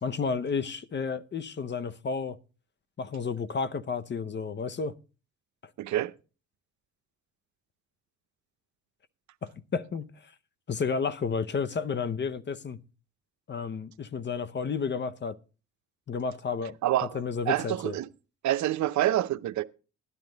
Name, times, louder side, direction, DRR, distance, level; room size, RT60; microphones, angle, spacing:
voice 1, 0.0-2.4 3.0-4.9 9.4-10.1 10.7-12.8 13.5-15.4 16.1-16.8 17.1-18.0, left 5 dB, 35° left, 0.8 m, -31 dB
voice 2, 5.8-6.1 16.8-17.2 17.5-18.1 18.4-19.6, right 13 dB, 70° right, 0.7 m, -27 dB
12.5 x 10.5 x 3.9 m
cardioid pair, 90°, 30 cm